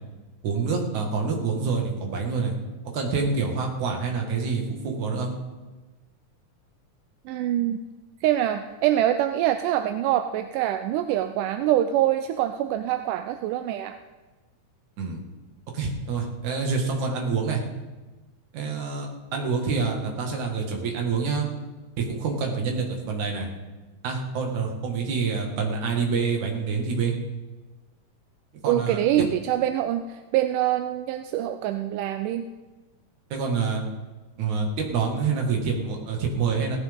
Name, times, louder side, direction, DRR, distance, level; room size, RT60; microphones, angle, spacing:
voice 1, 0.4-2.5 2.9-5.3 15.0-15.2 15.7-17.6 18.5-21.5 22.0-23.5 24.0-27.1 28.6-29.3 33.3-33.8 34.4-36.8, right 5 dB, 65° right, 1 dB, 3.1 m, -27 dB
voice 2, 7.3-7.8 8.2-14.0 28.7-32.5, right 12 dB, 85° right, 8 dB, 2.1 m, -25 dB
17.5 x 15.0 x 3.6 m, 1.2 s
omnidirectional pair, 3.6 m